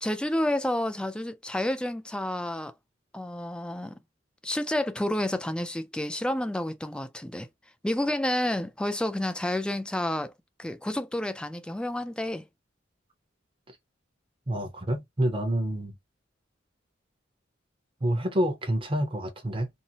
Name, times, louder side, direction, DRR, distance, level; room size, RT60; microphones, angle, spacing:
voice 1, 0.0-2.7 3.1-4.0 4.4-7.5 7.8-10.3 10.6-12.5, left 1 dB, 5° left, 0.3 m, -30 dB
voice 2, 14.5-15.9 18.0-19.7, right 1 dB, 30° right, 0.7 m, -28 dB
2.7 x 2.0 x 2.7 m
head